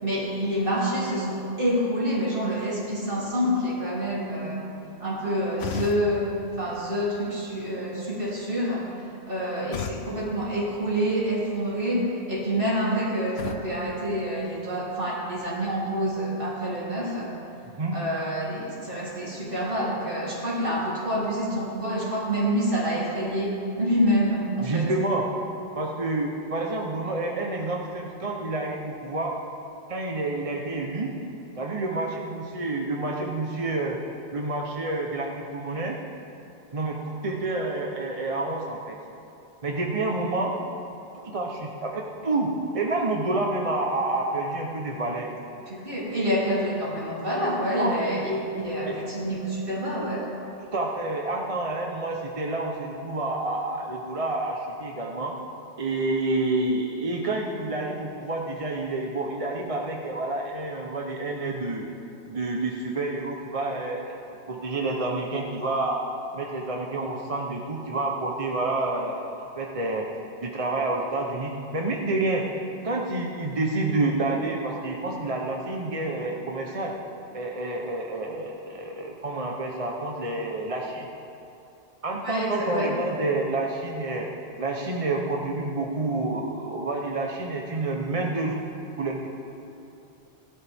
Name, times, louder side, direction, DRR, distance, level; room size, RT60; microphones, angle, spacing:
voice 1, 0.0-4.6 5.0-6.3 6.6-8.8 9.3-17.3 17.9-24.9 45.7-50.2 82.2-82.9, equal, 60° right, -7 dB, 3.3 m, -27 dB
sound 1, 5.6-7.6 9.7-11.4 13.4-15.0, left 8 dB, 85° left, 0.9 m, -39 dB
voice 2, 17.6-18.0 24.6-25.3 25.7-29.4 29.9-31.1 31.5-34.0 34.3-36.0 36.7-37.0 37.2-39.0 39.6-40.6 41.2-45.3 47.8-47.9 48.9-49.0 50.6-55.3 55.8-61.8 62.3-64.2 64.5-66.0 66.3-70.0 70.4-72.4 72.8-76.9 77.3-81.1 82.0-84.3 84.6-88.5 89.0-89.3, right 2 dB, 35° right, 0 dB, 0.9 m, -28 dB
17.0 x 12.0 x 3.5 m, 2.9 s
omnidirectional pair, 1.1 m